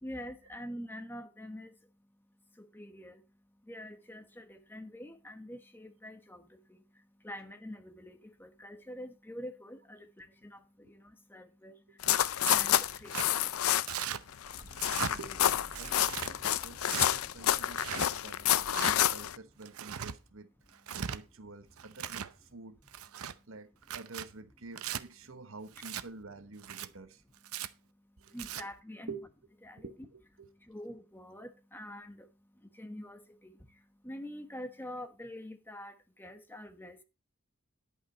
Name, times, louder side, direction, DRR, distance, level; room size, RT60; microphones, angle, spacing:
voice 1, 0.0-1.7 2.6-3.2 3.7-6.8 7.2-11.8 12.4-13.5 28.3-29.1 29.6-29.9 30.7-32.3 32.7-33.6 34.0-37.0, left 1 dB, 10° left, 1.0 m, -45 dB
voice 2, 11.9-12.2 14.9-20.5 21.0-22.8 23.5-27.2 28.2-28.7 29.1-29.3 29.8-30.5, right 3 dB, 65° right, 1.1 m, -49 dB
sound 1, 12.0-14.1 14.3-19.4, left 11 dB, 75° left, 0.5 m, -29 dB
Tearing, 12.4-12.7 13.1-13.3 13.9-14.2 14.7-15.1 15.7-16.3 16.9-17.1 17.7-18.1 18.7-18.9 19.6-20.1 20.7-21.2 21.8-22.3 22.9-23.3 23.8-24.3 24.8-25.0 25.8-26.0 26.6-26.9 27.4-27.7 28.3-28.6, right 9 dB, 80° right, 0.7 m, -38 dB
sound 2, 14.2-20.0, right 1 dB, 20° right, 1.3 m, -56 dB
10.5 x 8.6 x 4.2 m
head